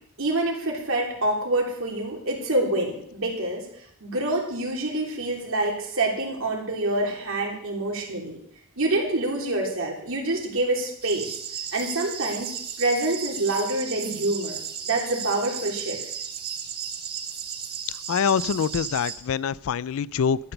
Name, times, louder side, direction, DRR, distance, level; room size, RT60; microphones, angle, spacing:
voice 1, 0.2-3.7 4.0-8.4 8.8-11.3 11.7-14.6 14.8-16.0, right 2 dB, 65° right, 0 dB, 3.2 m, -26 dB
sound 1, 11.0-19.2, right 7 dB, 45° right, 1.3 m, -35 dB
voice 2, 18.1-20.4, left 7 dB, 70° left, 20 dB, 0.4 m, -25 dB
12.5 x 7.9 x 6.8 m, 0.69 s
head